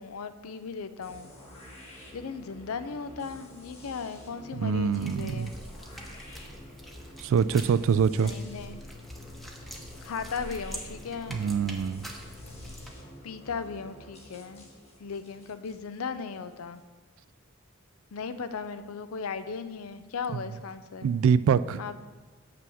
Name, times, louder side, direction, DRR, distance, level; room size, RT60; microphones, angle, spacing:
voice 1, 0.0-1.3 2.1-5.5 8.1-8.8 10.0-11.5 13.2-14.7 15.0-16.8 18.1-21.1 21.8-22.0, left 5 dB, 85° left, 11 dB, 0.5 m, -37 dB
sound 1, 1.0-16.8, equal, 30° left, 1.6 m, -49 dB
voice 2, 4.6-5.5 7.2-8.3 11.3-12.1 21.0-21.8, right 6 dB, 65° right, 17 dB, 0.3 m, -24 dB
sound 2, 4.9-12.9, equal, ahead, 0.8 m, -44 dB
6.2 x 5.8 x 7.1 m, 1.4 s
head